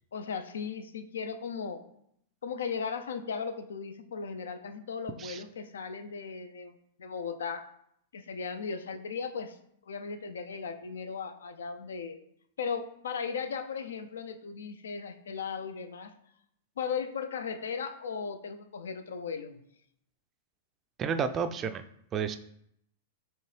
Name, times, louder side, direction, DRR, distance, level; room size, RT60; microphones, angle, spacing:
voice 1, 0.1-1.8 2.4-7.7 8.1-9.6 9.9-12.2 12.6-16.1 16.8-19.6, left 6 dB, 80° left, 9 dB, 0.4 m, -37 dB
voice 2, 21.0-21.8 22.1-22.4, right 6 dB, 30° right, 9 dB, 0.3 m, -31 dB
4.4 x 3.0 x 3.2 m, 0.72 s
hypercardioid pair, 115°, 0 cm